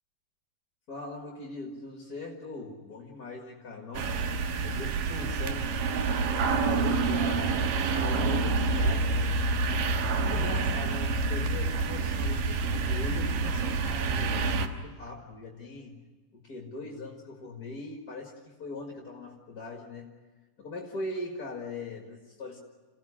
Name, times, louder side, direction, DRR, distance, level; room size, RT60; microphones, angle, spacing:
voice 1, 0.9-4.1 4.6-5.9 6.4-9.4 10.3-16.0 16.3-20.1 20.6-22.6, left 2 dB, 35° left, 1 dB, 1.9 m, -40 dB
sound 1, 3.9-14.7, right 3 dB, 85° right, 3.0 m, -27 dB
27.0 x 16.0 x 10.0 m, 1.3 s
omnidirectional pair, 3.9 m